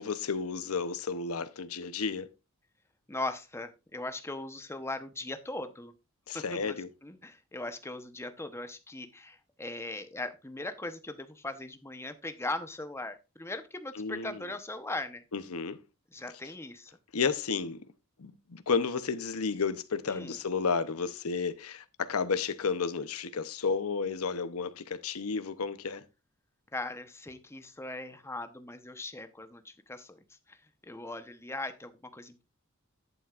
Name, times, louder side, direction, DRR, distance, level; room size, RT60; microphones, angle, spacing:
voice 1, 0.0-2.3 6.3-6.9 13.9-14.4 15.3-15.8 17.1-17.9 18.2-26.0, left 5 dB, 85° left, 0.8 m, -32 dB
voice 2, 3.1-5.9 6.3-6.8 7.0-15.2 16.1-16.9 20.1-20.4 26.7-30.2 30.5-30.6 30.8-32.4, left 2 dB, 10° left, 0.9 m, -39 dB
11.0 x 8.6 x 2.4 m
head